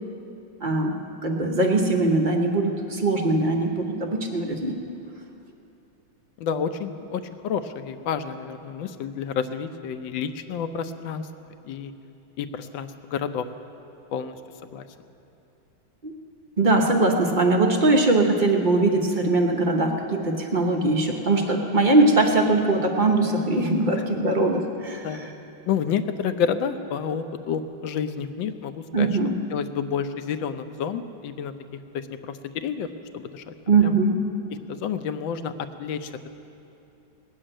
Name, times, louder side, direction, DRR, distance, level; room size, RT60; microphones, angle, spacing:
voice 1, 0.6-0.9 1.2-4.8 16.0-16.1 16.6-25.3 28.9-29.3 33.7-34.3, right 2 dB, 45° right, 2 dB, 0.6 m, -21 dB
voice 2, 6.4-11.3 11.6-11.9 12.4-13.5 14.1-14.3 14.6-14.8 25.0-25.3 25.7-29.1 29.5-31.5 31.9-32.9 33.1-33.5 33.8-33.9 34.7-36.3, left 7 dB, 70° left, 10 dB, 1.3 m, -29 dB
19.0 x 7.4 x 8.9 m, 2.8 s
omnidirectional pair, 2.3 m